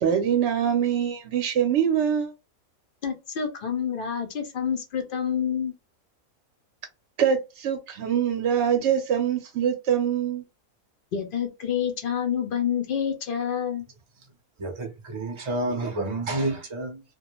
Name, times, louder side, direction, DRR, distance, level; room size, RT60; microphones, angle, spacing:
voice 1, 0.0-2.3 7.2-10.4, right 8 dB, 65° right, 0.7 m, -24 dB
voice 2, 3.0-5.7 11.1-13.8, left 8 dB, 75° left, 0.5 m, -28 dB
voice 3, 14.6-17.0, right 2 dB, 45° right, 0.4 m, -29 dB
2.3 x 2.2 x 2.9 m
omnidirectional pair, 1.5 m